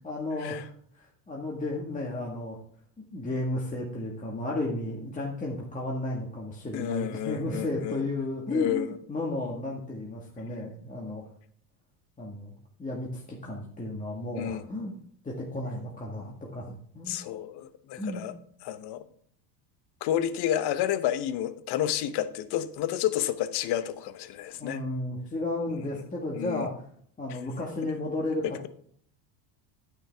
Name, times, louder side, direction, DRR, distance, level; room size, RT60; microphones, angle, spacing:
voice 1, 0.0-2.6 3.1-11.3 12.2-12.5 12.8-14.9 15.2-17.2 18.0-18.3 24.6-26.8 27.2-28.7, left 2 dB, 15° left, -2 dB, 1.7 m, -33 dB
voice 2, 6.7-8.0 8.5-8.9 14.4-14.6 17.1-18.3 18.6-19.0 20.0-24.8 26.4-26.6, left 11 dB, 55° left, 12 dB, 1.0 m, -30 dB
9.6 x 8.9 x 3.5 m, 0.62 s
supercardioid pair, 110°, 49 cm